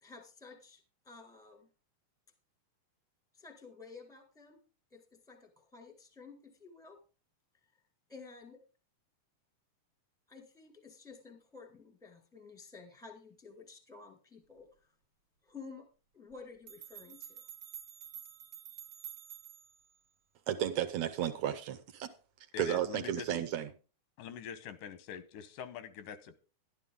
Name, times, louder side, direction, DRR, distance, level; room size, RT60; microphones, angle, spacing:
voice 1, 0.0-1.7 3.3-4.6 4.9-7.0 8.1-8.6 10.3-14.9 15.4-15.9 16.1-17.4, left 4 dB, ahead, 0.8 m, -52 dB
sound 1, 16.3-16.4 16.7-19.8, right 9 dB, 55° right, 2.1 m, -49 dB
voice 2, 20.5-22.1 22.6-23.7, right 10 dB, 70° right, 1.8 m, -33 dB
voice 3, 22.5-23.3 24.2-26.4, left 8 dB, 90° left, 2.5 m, -44 dB
12.0 x 11.5 x 3.6 m
omnidirectional pair, 3.6 m